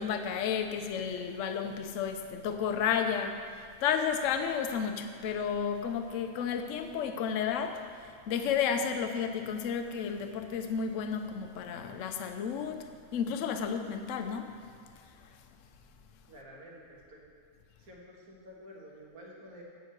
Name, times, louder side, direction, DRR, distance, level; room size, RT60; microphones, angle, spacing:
voice 1, 0.0-7.8 8.3-14.5, left 7 dB, 60° left, 6 dB, 0.9 m, -32 dB
voice 2, 16.3-17.2 17.8-19.6, equal, 65° right, -3 dB, 2.0 m, -50 dB
7.5 x 5.7 x 7.7 m, 2.3 s
omnidirectional pair, 1.7 m